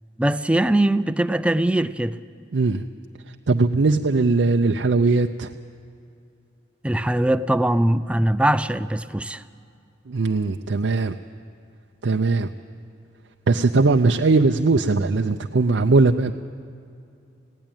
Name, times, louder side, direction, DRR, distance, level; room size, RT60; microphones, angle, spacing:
voice 1, 0.2-2.2 6.8-9.4, right 1 dB, 5° right, 0.4 m, -21 dB
voice 2, 2.5-2.8 3.5-5.5 10.1-11.1 12.0-12.5 13.5-16.3, right 3 dB, 80° right, 0.5 m, -19 dB
19.5 x 16.0 x 8.9 m
head